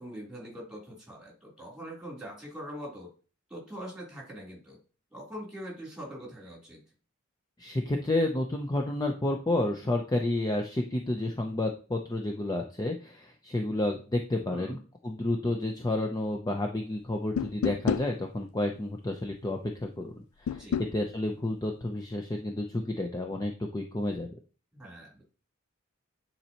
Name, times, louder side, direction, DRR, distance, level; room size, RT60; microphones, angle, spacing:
voice 1, 0.0-3.1 3.5-4.8 5.1-6.8 14.5-14.8 20.5-20.8 24.7-25.2, equal, 5° right, -3 dB, 3.3 m, -43 dB
voice 2, 7.6-14.8 15.0-24.4, left 1 dB, 20° left, 3 dB, 0.6 m, -30 dB
sound 1, 17.4-18.1 20.5-20.9, left 8 dB, 75° left, 0.3 m, -29 dB
9.6 x 4.4 x 2.9 m, 0.36 s
head